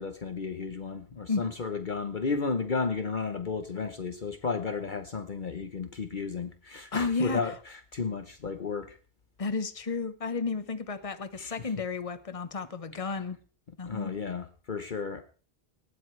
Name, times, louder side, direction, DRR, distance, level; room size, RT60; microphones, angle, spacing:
voice 1, 0.0-9.0 11.4-11.7 13.9-15.2, left 4 dB, 50° left, 9 dB, 1.1 m, -33 dB
voice 2, 6.9-7.4 9.4-13.4 13.8-14.1, left 4 dB, 35° left, 11 dB, 1.2 m, -32 dB
19.0 x 14.0 x 3.3 m, 0.38 s
omnidirectional pair, 1.0 m